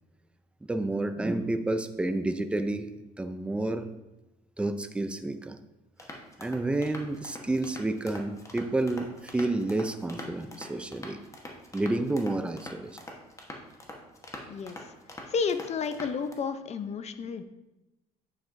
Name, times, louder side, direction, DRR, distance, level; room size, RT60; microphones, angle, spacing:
voice 1, 0.6-2.9 3.2-3.9 4.6-5.6 6.4-11.2 11.7-13.0, right 2 dB, 5° right, 9 dB, 0.4 m, -30 dB
sound 1, 6.0-16.3, left 1 dB, 20° left, 1.1 m, -44 dB
voice 2, 15.3-17.4, left 5 dB, 40° left, 11 dB, 0.6 m, -31 dB
8.2 x 7.4 x 2.6 m, 1.0 s
cardioid pair, 110°, 17 cm